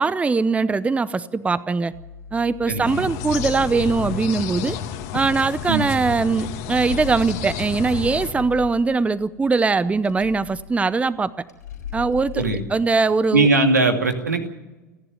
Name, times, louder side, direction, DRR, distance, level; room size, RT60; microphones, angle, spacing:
voice 1, 0.0-1.9 2.3-4.8 5.1-11.4 11.9-12.4 12.7-13.5, right 4 dB, 15° right, 17 dB, 0.7 m, -21 dB
sound 1, 1.9-12.8, left 9 dB, 80° left, 4.4 m, -38 dB
voice 2, 2.7-3.1 5.7-5.9 12.3-12.6 13.3-14.5, right 3 dB, 90° right, 5 dB, 2.4 m, -20 dB
sound 2, 2.8-8.3, left 8 dB, 60° left, 2.3 m, -31 dB
29.5 x 11.0 x 9.2 m, 1.1 s
figure-of-eight pair, 80°, 9 cm